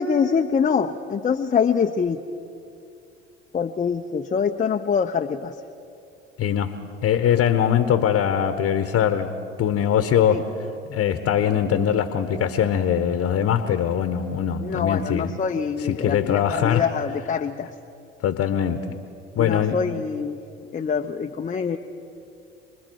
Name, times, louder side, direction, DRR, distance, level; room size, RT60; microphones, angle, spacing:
voice 1, 0.0-2.2 3.5-5.5 10.3-10.4 14.6-17.7 19.4-20.4 20.7-21.8, left 6 dB, 25° left, 5 dB, 0.8 m, -24 dB
voice 2, 6.4-6.7 7.0-10.5 10.9-15.3 15.9-16.9 18.2-18.9 19.4-19.8, left 9 dB, 50° left, 9 dB, 1.2 m, -22 dB
27.5 x 20.5 x 4.7 m, 2.6 s
hypercardioid pair, 60°, 30 cm